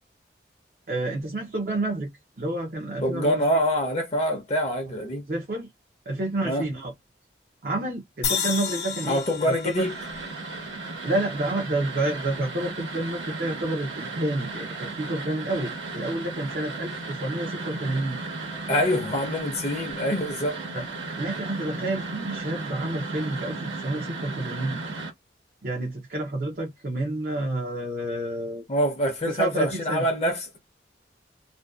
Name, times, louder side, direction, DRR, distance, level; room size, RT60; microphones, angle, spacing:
voice 1, 0.9-3.6 5.3-5.7 6.1-6.9 7.6-9.8 11.0-18.2 20.7-20.8 21.2-24.8 25.6-28.6 29.3-30.1, right 1 dB, 50° right, 0.6 m, -29 dB
voice 2, 3.0-5.2 6.4-6.6 9.1-9.9 18.7-20.6 28.7-30.6, equal, 35° left, 0.6 m, -25 dB
sound 1, 8.2-11.5, left 6 dB, 65° left, 0.8 m, -32 dB
sound 2, 9.8-25.1, right 3 dB, 85° right, 1.1 m, -35 dB
2.5 x 2.2 x 2.2 m
head